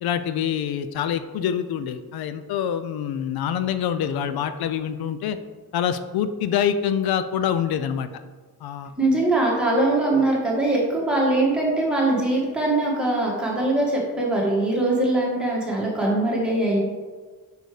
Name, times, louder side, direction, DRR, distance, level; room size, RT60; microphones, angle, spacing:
voice 1, 0.0-5.4 5.7-8.1 8.6-8.9, left 8 dB, 80° left, 11 dB, 0.5 m, -25 dB
voice 2, 9.0-16.8, right 2 dB, ahead, -4 dB, 1.5 m, -22 dB
6.6 x 4.8 x 4.8 m, 1.4 s
wide cardioid pair, 180°, 37 cm